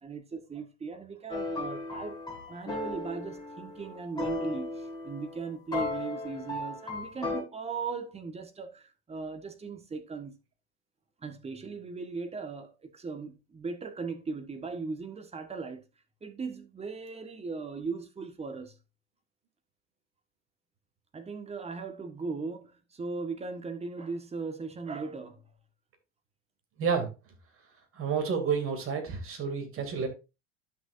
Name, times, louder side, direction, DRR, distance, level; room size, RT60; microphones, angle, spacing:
voice 1, 0.0-10.3 11.2-15.8 16.2-18.7 21.1-25.4, right 4 dB, 20° right, 1.5 m, -38 dB
sound 1, 1.3-7.4, left 2 dB, 10° left, 3.6 m, -36 dB
voice 2, 26.8-27.1 27.9-30.1, right 6 dB, 40° right, 2.7 m, -30 dB
11.5 x 6.3 x 2.6 m
figure-of-eight pair, 65°, 34 cm